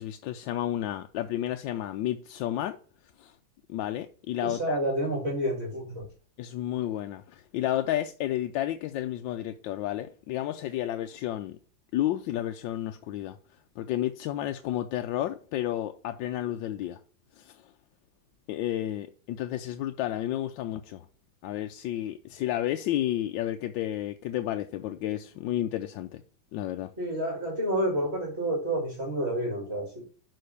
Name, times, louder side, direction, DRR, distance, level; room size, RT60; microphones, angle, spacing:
voice 1, 0.0-2.8 3.2-3.3 3.7-4.8 6.4-11.6 11.9-13.4 13.8-17.0 17.4-17.5 18.5-21.0 21.4-26.2 26.5-26.9, left 13 dB, 85° left, 1.3 m, -31 dB
voice 2, 4.4-6.0 27.0-30.0, right 1 dB, 35° right, 2.4 m, -29 dB
6.5 x 4.2 x 6.5 m
omnidirectional pair, 2.0 m